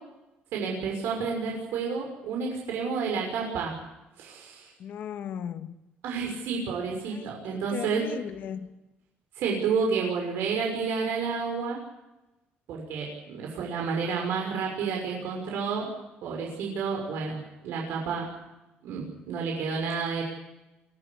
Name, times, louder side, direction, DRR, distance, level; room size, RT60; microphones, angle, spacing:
voice 1, 0.5-3.8 4.2-4.7 6.0-8.1 9.3-11.8 12.7-15.9 16.2-18.3 18.8-20.2, right 5 dB, 75° right, 0 dB, 6.2 m, -30 dB
voice 2, 4.8-5.7 7.1-8.7, left 8 dB, 55° left, 9 dB, 1.8 m, -37 dB
23.5 x 14.0 x 9.9 m, 0.99 s
cardioid pair, 160°, 4 cm